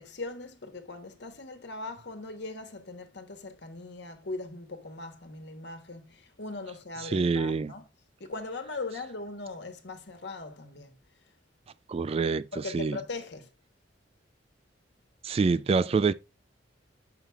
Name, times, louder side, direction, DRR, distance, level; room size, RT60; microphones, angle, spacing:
voice 1, 0.0-7.8 8.2-11.0 12.5-13.5, left 3 dB, 65° left, 1.3 m, -40 dB
voice 2, 7.0-7.7 11.9-13.0 15.2-16.1, right 4 dB, 35° right, 0.3 m, -26 dB
7.0 x 5.7 x 3.4 m
head